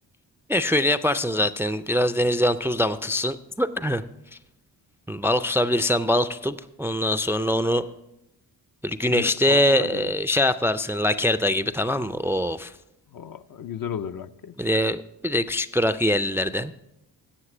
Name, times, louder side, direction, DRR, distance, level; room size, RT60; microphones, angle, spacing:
voice 1, 0.5-4.0 5.1-7.8 8.8-12.7 14.6-16.7, left 1 dB, 5° right, 0.3 m, -23 dB
voice 2, 9.1-10.1 13.1-14.7, left 8 dB, 55° left, 0.5 m, -35 dB
9.8 x 7.2 x 6.1 m
cardioid pair, 55°, 41 cm